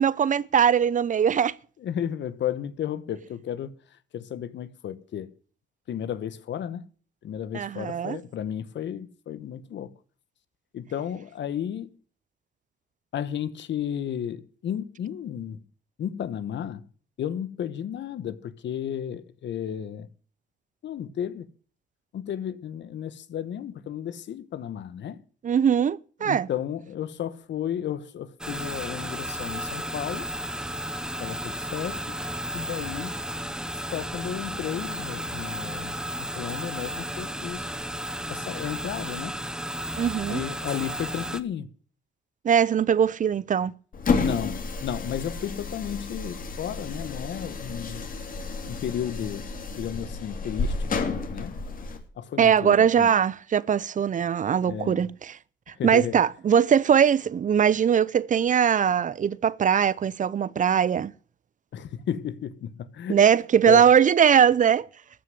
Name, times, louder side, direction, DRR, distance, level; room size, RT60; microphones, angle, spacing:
voice 1, 0.0-1.5 7.5-8.2 25.4-26.5 40.0-40.4 42.4-43.7 52.4-55.4 55.7-61.1 63.1-64.9, right 8 dB, 40° right, 0.6 m, -21 dB
voice 2, 1.8-3.7 4.1-5.3 5.9-6.8 7.2-9.9 10.7-11.9 13.1-15.6 16.0-16.8 17.2-20.1 20.8-21.5 22.1-25.2 26.2-30.3 31.2-32.2 32.5-33.2 33.9-36.0 36.3-37.7 38.3-39.4 40.3-41.7 44.2-48.0 48.7-51.6 52.2-53.1 54.7-55.0 55.8-56.2 61.7-63.2 63.7-63.9, left 9 dB, 65° left, 1.2 m, -33 dB
sound 1, 28.4-41.4, equal, 5° right, 0.9 m, -33 dB
sound 2, 43.9-52.0, left 4 dB, 45° left, 2.7 m, -31 dB
14.0 x 6.3 x 9.6 m
cardioid pair, 90°, 20 cm